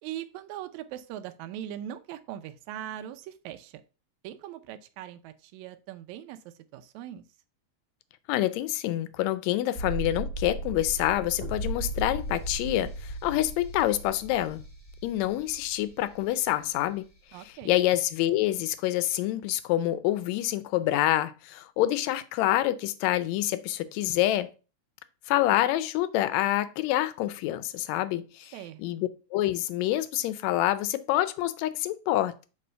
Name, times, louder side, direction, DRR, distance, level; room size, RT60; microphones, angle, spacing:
voice 1, 0.0-3.8 4.2-7.2 17.3-17.8 28.5-29.0, right 11 dB, 80° right, 1.9 m, -40 dB
voice 2, 8.3-14.6 15.0-17.1 17.7-24.5 25.3-28.5 28.8-32.5, left 14 dB, 80° left, 1.7 m, -27 dB
sound 1, 9.7-16.6 16.9-17.0, right 1 dB, 20° left, 0.7 m, -36 dB
6.8 x 3.1 x 5.5 m
omnidirectional pair, 3.4 m